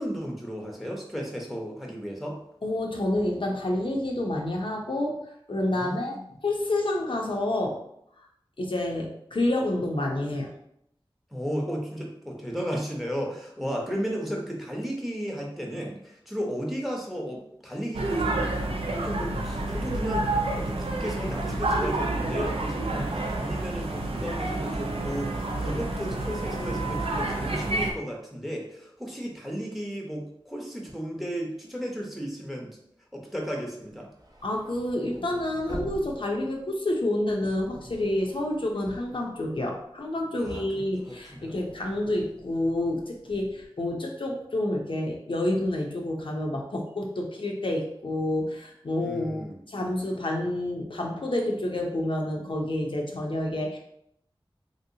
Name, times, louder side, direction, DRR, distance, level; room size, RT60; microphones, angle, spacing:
voice 1, 0.0-2.4 5.7-6.2 11.3-18.7 18.9-32.8 33.1-34.1 40.4-41.5 49.0-49.6, equal, ahead, -1 dB, 0.7 m, -34 dB
voice 2, 2.6-5.2 5.5-6.2 6.4-7.8 8.6-10.5 34.4-53.8, left 1 dB, 60° left, 0 dB, 0.5 m, -28 dB
sound 1, 17.9-27.9, right 2 dB, 85° right, 0.4 m, -29 dB
sound 2, 33.9-40.0 40.3-43.7, equal, 45° right, 0.6 m, -46 dB
3.0 x 2.7 x 2.7 m, 0.73 s
wide cardioid pair, 50°, 10 cm